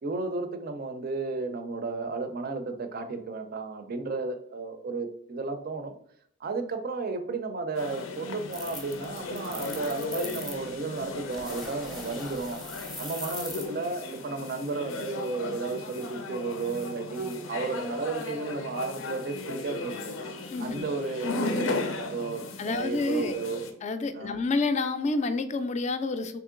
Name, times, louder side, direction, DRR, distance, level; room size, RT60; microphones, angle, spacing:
voice 1, 0.0-6.0 6.4-12.6 13.0-19.9 20.6-23.7 24.1-24.4, right 3 dB, 50° right, 8 dB, 0.4 m, -33 dB
sound 1, 7.7-23.7, left 3 dB, 90° left, 0.6 m, -36 dB
sound 2, 8.5-10.6 11.3-13.7, equal, ahead, 0.6 m, -41 dB
voice 2, 20.5-20.8 22.6-23.3 23.8-26.4, left 3 dB, 35° left, 9 dB, 0.3 m, -29 dB
3.6 x 2.9 x 3.6 m, 0.66 s
head